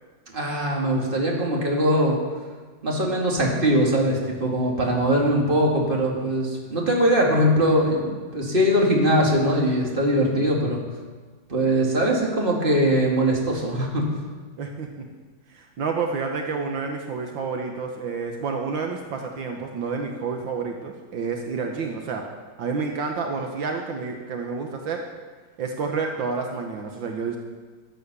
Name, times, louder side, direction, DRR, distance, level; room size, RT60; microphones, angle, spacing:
voice 1, 0.3-2.2 2.8-10.8 11.5-14.0, equal, 25° right, -2 dB, 2.4 m, -21 dB
voice 2, 14.6-15.1 15.5-22.2 22.6-25.0 25.6-27.4, right 5 dB, 75° right, 2 dB, 1.8 m, -29 dB
13.5 x 7.8 x 6.8 m, 1.4 s
omnidirectional pair, 2.1 m